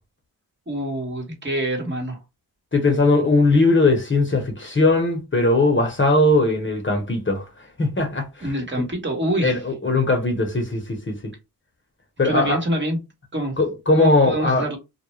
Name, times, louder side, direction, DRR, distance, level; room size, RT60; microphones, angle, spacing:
voice 1, 0.7-2.2 8.4-9.6 12.2-13.0 13.3-13.5 14.0-14.8, right 1 dB, 30° right, 1.2 m, -25 dB
voice 2, 2.7-7.4 7.8-8.2 9.4-11.1 12.2-12.6 13.6-14.6, left 2 dB, 30° left, 1.0 m, -19 dB
2.4 x 2.1 x 3.1 m
cardioid pair, 50°, 38 cm